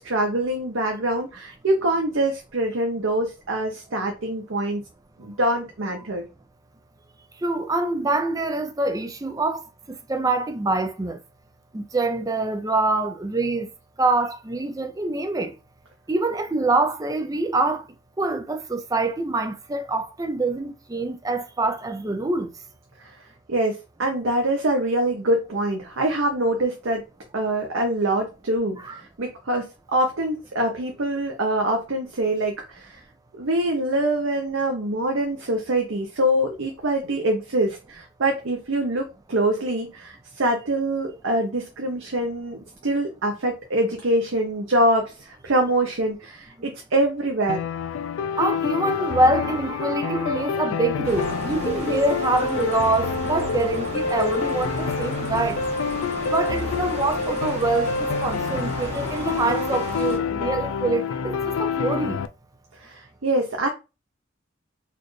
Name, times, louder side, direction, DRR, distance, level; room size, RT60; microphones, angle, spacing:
voice 1, 0.0-4.8 5.2-6.2 23.5-27.0 27.3-33.0 33.4-47.6 62.8-63.7, right 1 dB, 80° right, 0.8 m, -24 dB
voice 2, 7.4-9.6 10.1-11.2 11.7-13.7 14.0-15.5 16.1-17.8 18.2-22.5 28.8-29.0 48.4-55.6 56.3-62.2, right 2 dB, 20° right, 0.4 m, -25 dB
sound 1, 47.5-62.3, left 5 dB, 80° left, 0.4 m, -27 dB
sound 2, 51.0-60.2, right 2 dB, 35° right, 1.0 m, -35 dB
4.2 x 2.5 x 3.1 m
head